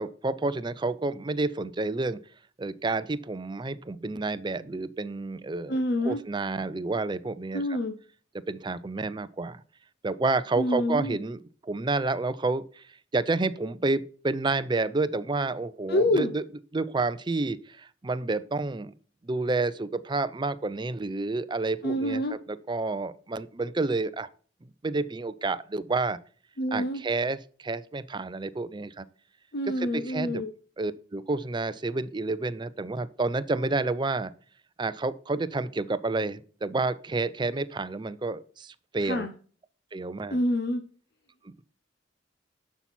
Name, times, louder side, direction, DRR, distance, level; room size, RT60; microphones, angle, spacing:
voice 1, 0.0-2.2 2.6-7.6 8.5-9.6 10.0-12.8 13.1-16.4 16.7-18.9 19.2-24.3 24.8-26.2 26.7-29.1 29.8-30.4 30.8-34.3 34.8-39.3 39.9-40.4 41.4-41.6, right 3 dB, 25° right, 14 dB, 0.5 m, -29 dB
voice 2, 5.7-6.2 7.5-8.0 10.6-11.2 15.9-16.3 21.8-22.4 26.6-27.0 29.5-30.5 39.0-39.3 40.3-40.8, left 1 dB, 60° left, 7 dB, 0.8 m, -27 dB
11.5 x 5.8 x 4.3 m, 0.43 s
head